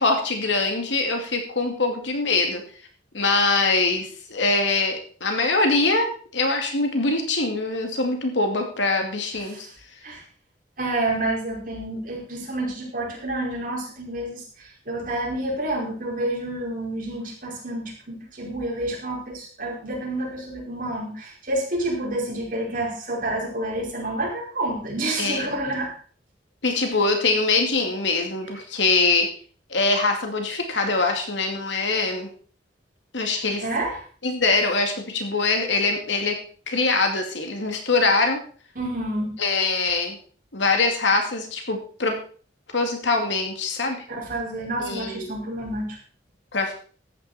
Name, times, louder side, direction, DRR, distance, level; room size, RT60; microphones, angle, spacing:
voice 1, 0.0-2.6 3.1-9.7 25.2-25.5 26.6-29.3 29.7-32.3 33.1-33.6 34.2-36.4 36.7-38.4 39.4-40.2 40.5-42.2 42.7-44.0 44.8-45.3 46.5-46.7, left 3 dB, 80° left, 4 dB, 2.4 m, -23 dB
voice 2, 9.4-9.7 10.0-10.2 10.8-26.0 33.3-34.0 38.8-39.4 44.2-46.0, right 1 dB, 50° right, -3 dB, 5.1 m, -29 dB
14.0 x 9.7 x 4.3 m, 0.42 s
head